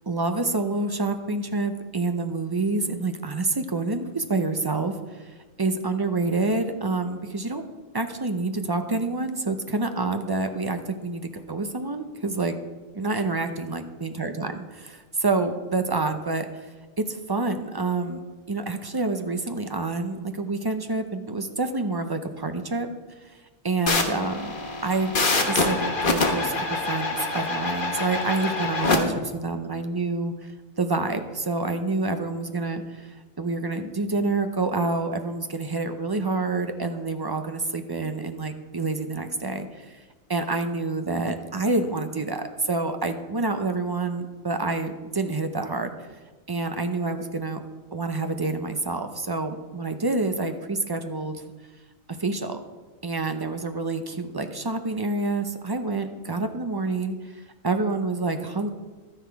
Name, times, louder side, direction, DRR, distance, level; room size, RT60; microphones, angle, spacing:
voice 1, 0.1-7.6 7.9-12.6 12.9-14.5 15.2-16.7 17.1-18.2 18.5-22.9 23.2-23.3 23.6-24.6 24.8-25.2 25.5-40.0 40.3-45.9 46.5-47.6 47.9-51.4 52.1-52.6 53.0-58.7, right 3 dB, 35° right, 7 dB, 0.4 m, -28 dB
sound 1, 23.9-29.0, left 3 dB, 40° left, 1.3 m, -25 dB
12.5 x 9.8 x 4.7 m, 1.3 s
omnidirectional pair, 1.4 m